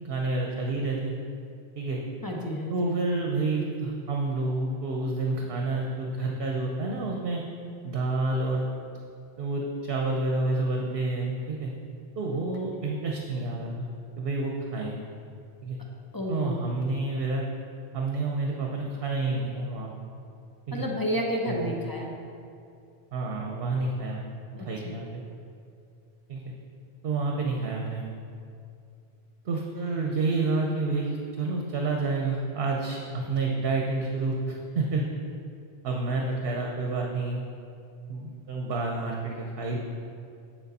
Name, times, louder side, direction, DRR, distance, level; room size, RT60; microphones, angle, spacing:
voice 1, 0.0-1.1 1.8-2.0 2.7-7.4 7.8-8.6 9.4-11.7 12.1-13.9 14.2-15.0 15.6-15.8 16.3-17.5 17.9-19.9 20.7-20.8 21.4-21.8 23.1-24.2 24.5-25.2 26.3-26.4 27.0-28.0 29.4-35.0 35.8-37.4 38.1-39.8, right 3 dB, 65° right, 0 dB, 0.9 m, -29 dB
voice 2, 2.2-2.7 16.1-16.5 20.7-22.1 24.6-24.7, equal, 20° left, -2 dB, 0.9 m, -30 dB
7.5 x 6.7 x 4.1 m, 2.5 s
omnidirectional pair, 1.1 m